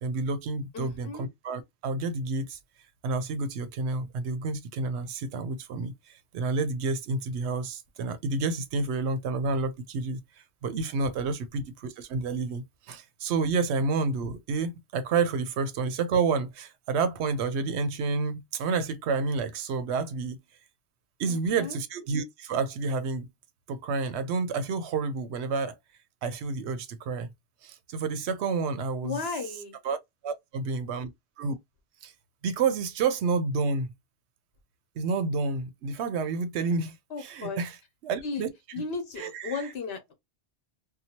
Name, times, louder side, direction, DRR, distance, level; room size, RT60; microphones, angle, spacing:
voice 1, 0.0-2.6 3.0-5.9 6.3-10.2 10.6-20.4 21.2-23.3 23.7-25.7 26.2-27.3 27.6-30.0 30.2-31.1 31.4-31.6 32.0-32.1 32.4-33.9 35.0-37.8 38.0-38.8 39.1-39.7, right 4 dB, 80° right, 0.8 m, -29 dB
voice 2, 0.7-1.3 21.3-21.8 29.0-29.8 37.1-37.6 38.2-38.5 38.7-40.1, left 4 dB, 70° left, 1.1 m, -35 dB
2.8 x 2.2 x 2.8 m
omnidirectional pair, 1.1 m